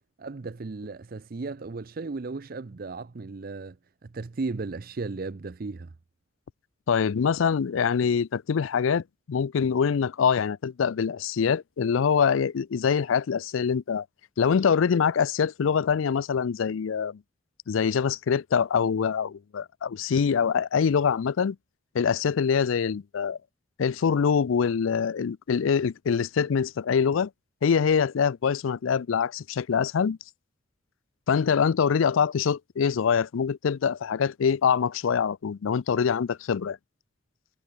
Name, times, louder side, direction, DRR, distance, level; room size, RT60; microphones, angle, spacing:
voice 1, 0.2-3.8 4.0-5.9, right 3 dB, 45° right, 0.5 m, -35 dB
voice 2, 6.9-14.1 14.4-17.2 17.7-21.6 21.9-23.4 23.8-27.3 27.6-30.2 31.3-36.8, left 6 dB, 85° left, 0.4 m, -24 dB
head